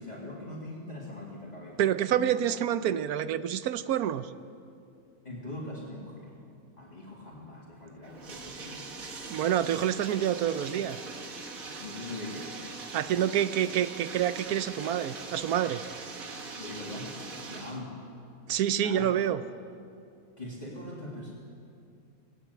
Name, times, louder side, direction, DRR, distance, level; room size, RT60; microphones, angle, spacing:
voice 1, 0.0-2.4 2.8-2.9 5.2-6.3 6.8-8.9 11.8-12.6 16.6-17.2 17.5-17.9 18.7-19.2 20.4-21.3, left 2 dB, 30° left, -5 dB, 2.6 m, -41 dB
voice 2, 1.8-4.3 9.3-11.0 12.9-15.8 18.5-19.4, right 10 dB, 80° right, 13 dB, 1.2 m, -27 dB
Bathtub (filling or washing), 8.0-17.8, right 3 dB, 65° right, 1.9 m, -42 dB
18.5 x 17.5 x 8.2 m, 2.5 s
omnidirectional pair, 1.6 m